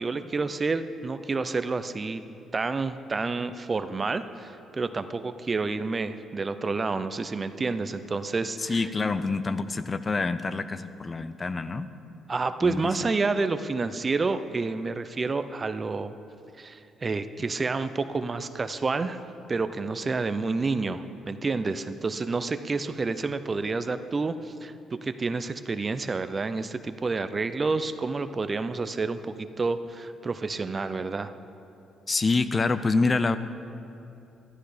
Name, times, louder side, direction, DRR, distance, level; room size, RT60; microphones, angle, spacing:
voice 1, 0.0-2.2 2.5-8.9 12.3-16.1 16.6-19.2 19.5-24.7 25.0-31.3, right 3 dB, 35° right, 11 dB, 0.6 m, -29 dB
voice 2, 8.6-11.9 12.6-12.8 32.1-33.4, left 3 dB, 35° left, 12 dB, 0.5 m, -26 dB
12.5 x 11.5 x 5.0 m, 2.7 s
supercardioid pair, 70°, 0 cm